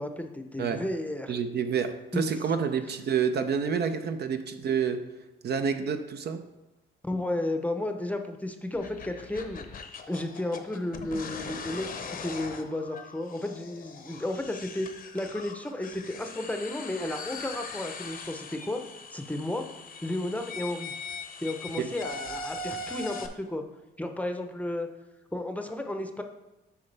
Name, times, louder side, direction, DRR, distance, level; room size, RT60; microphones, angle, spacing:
voice 1, 0.0-1.3 2.1-2.3 7.0-9.8 10.1-14.9 15.1-18.8 19.1-19.6 20.0-20.9 21.4-23.6 24.0-24.9 25.3-26.2, left 1 dB, 5° left, 5 dB, 0.7 m, -33 dB
voice 2, 1.3-5.0 5.4-6.4 21.8-21.9, right 6 dB, 55° right, 8 dB, 0.6 m, -28 dB
sound 1, 8.7-23.3, left 4 dB, 45° left, 0.7 m, -41 dB
8.0 x 5.6 x 3.3 m, 1.0 s
cardioid pair, 90°, 20 cm